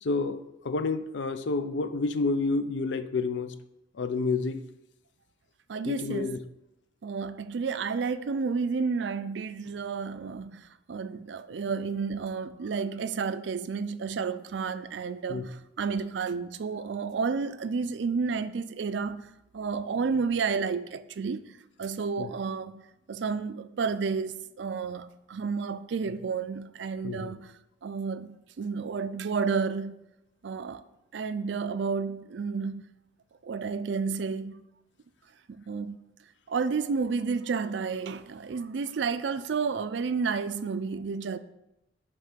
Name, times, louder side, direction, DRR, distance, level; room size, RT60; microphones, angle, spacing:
voice 1, 0.0-3.5 4.0-4.6 5.9-6.4 15.3-15.5 22.2-22.3 27.0-27.3, left 3 dB, 80° left, 0.5 m, -29 dB
voice 2, 5.7-6.3 7.0-19.3 19.5-21.4 21.8-22.8 23.1-27.5 27.8-30.0 30.4-30.8 31.1-32.8 33.4-34.6 35.5-36.0 36.5-41.4, right 5 dB, 75° right, 0.4 m, -31 dB
8.5 x 3.7 x 5.1 m
head